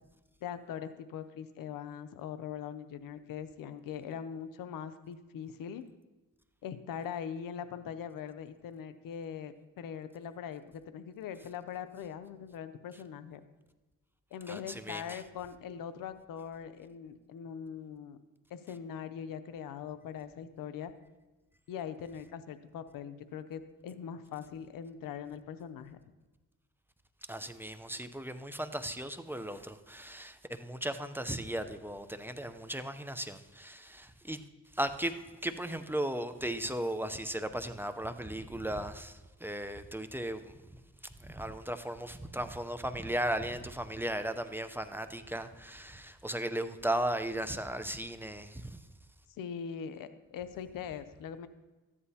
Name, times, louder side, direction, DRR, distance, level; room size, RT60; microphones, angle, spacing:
voice 1, 0.4-5.8 6.6-13.4 14.3-18.2 18.5-20.9 21.7-26.0 49.4-51.5, left 8 dB, 90° left, 0.6 m, -41 dB
voice 2, 14.5-15.2 27.3-34.4 34.7-40.5 41.2-48.8, right 1 dB, 5° right, 0.6 m, -36 dB
13.5 x 9.8 x 2.8 m
cardioid pair, 75°, 33 cm